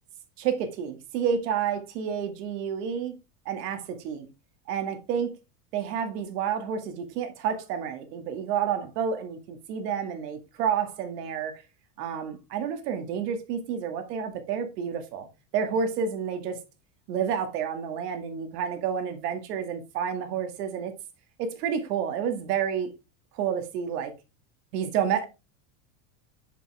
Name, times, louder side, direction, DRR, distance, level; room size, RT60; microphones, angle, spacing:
voice 1, 0.4-3.2 3.5-4.3 4.7-5.4 5.7-11.5 12.0-15.3 15.5-16.6 17.1-20.9 21.4-22.9 23.3-24.1 24.7-25.3, right 7 dB, 80° right, 2.1 m, -29 dB
7.2 x 5.4 x 3.4 m
supercardioid pair, 170°, 47 cm